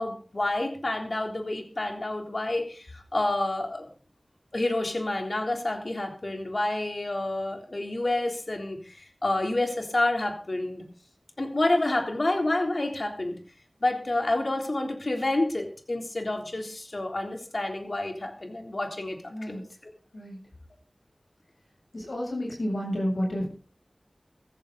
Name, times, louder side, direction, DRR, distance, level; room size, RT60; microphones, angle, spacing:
voice 1, 0.0-3.9 4.5-10.8 11.4-13.4 13.8-19.2 19.5-19.9, left 2 dB, 55° left, 4 dB, 3.5 m, -29 dB
voice 2, 19.3-19.6 20.1-20.4 21.9-23.5, equal, 70° left, -1 dB, 7.9 m, -30 dB
15.0 x 14.5 x 4.1 m, 0.38 s
wide cardioid pair, 60°, 0 cm